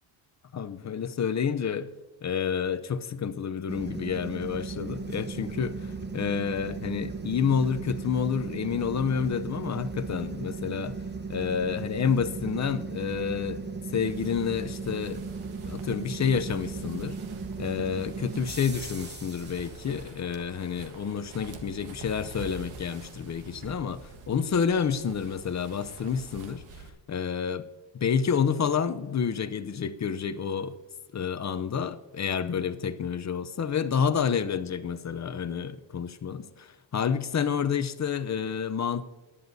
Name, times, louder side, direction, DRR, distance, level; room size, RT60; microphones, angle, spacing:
voice 1, 0.5-1.9 2.2-5.7 6.1-11.0 11.3-13.6 13.9-15.2 15.6-17.2 17.6-27.6 27.9-30.7 31.1-39.0, left 7 dB, 35° left, 11 dB, 0.6 m, -29 dB
sound 1, 3.7-20.1, right 4 dB, 20° right, 0.9 m, -37 dB
sound 2, 14.0-26.9, right 4 dB, 85° right, 1.5 m, -47 dB
18.0 x 11.0 x 2.7 m, 1.2 s
cardioid pair, 110°, 48 cm